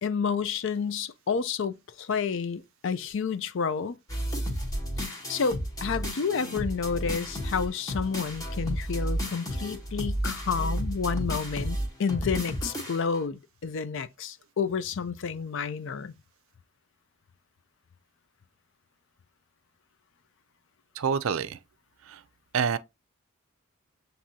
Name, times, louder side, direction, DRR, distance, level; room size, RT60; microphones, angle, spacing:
voice 1, 0.0-4.0 5.0-16.1, left 6 dB, 60° left, 0.4 m, -30 dB
sound 1, 4.1-13.2, equal, 15° left, 1.1 m, -32 dB
voice 2, 21.0-21.6 22.1-22.2 22.5-22.8, right 6 dB, 65° right, 0.4 m, -27 dB
7.3 x 2.7 x 2.7 m
head